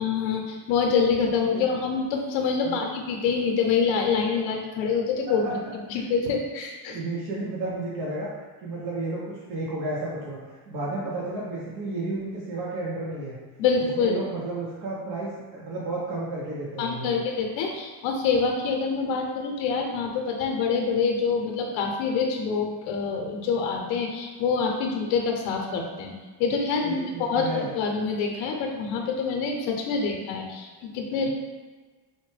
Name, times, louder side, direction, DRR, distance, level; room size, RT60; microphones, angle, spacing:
voice 1, 0.0-5.6 5.9-7.0 13.6-14.2 16.8-26.1 26.4-31.3, left 5 dB, 85° left, 1 dB, 0.7 m, -26 dB
voice 2, 6.9-13.4 13.8-17.2 26.8-27.7 31.1-31.3, right 2 dB, 55° right, -6 dB, 0.8 m, -32 dB
4.1 x 2.1 x 3.2 m, 1.3 s
cardioid pair, 110°, 44 cm